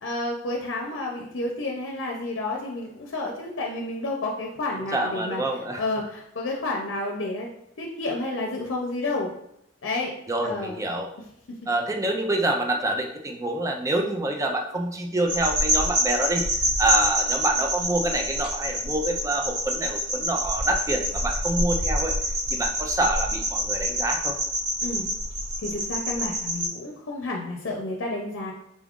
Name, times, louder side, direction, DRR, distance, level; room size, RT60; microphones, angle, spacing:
voice 1, 0.0-5.4 5.8-7.5 7.8-9.3 9.8-10.1 10.4-10.8 11.5-11.6 24.8-25.1 25.6-28.5, left 2 dB, 75° left, 0 dB, 0.6 m, -30 dB
voice 2, 4.7-5.8 10.3-11.1 11.7-16.5 16.8-22.1 22.5-24.3, right 1 dB, 15° right, 2 dB, 0.5 m, -26 dB
sound 1, 15.3-26.7, equal, 65° right, 1.2 m, -27 dB
3.8 x 2.4 x 3.6 m, 0.77 s
head